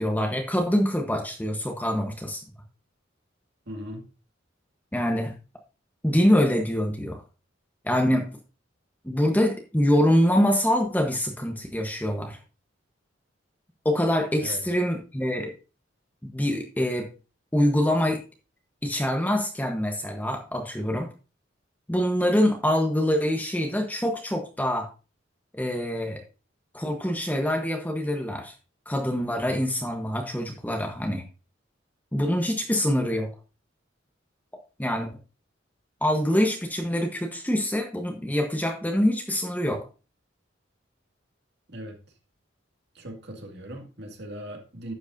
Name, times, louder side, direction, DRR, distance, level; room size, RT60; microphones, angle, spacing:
voice 1, 0.0-2.4 4.9-5.3 6.0-7.2 7.8-8.3 9.0-12.4 13.8-15.5 16.3-17.1 17.5-18.2 18.8-21.1 21.9-24.9 25.5-26.2 26.7-28.5 28.9-31.2 32.1-33.3 34.8-35.1 36.0-39.8, equal, 10° left, 1.0 m, -25 dB
voice 2, 3.7-4.1 14.4-14.6 41.7-42.0 42.9-44.9, equal, 60° right, 2.1 m, -39 dB
11.5 x 8.0 x 2.6 m
head